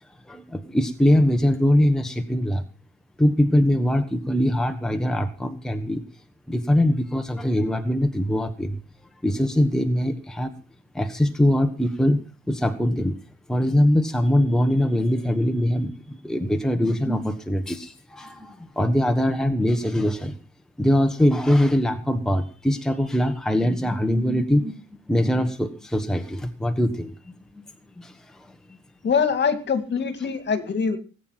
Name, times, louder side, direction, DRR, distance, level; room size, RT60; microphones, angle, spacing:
voice 1, 0.3-2.6 3.2-6.0 6.5-8.8 9.2-10.5 10.9-13.2 13.5-20.4 20.8-24.8 25.1-27.1 27.5-27.6 28.0-28.5, left 1 dB, ahead, 6 dB, 1.4 m, -22 dB
voice 2, 29.0-31.0, left 6 dB, 35° left, 9 dB, 2.3 m, -23 dB
19.5 x 9.2 x 5.9 m, 0.37 s
cardioid pair, 130°, 29 cm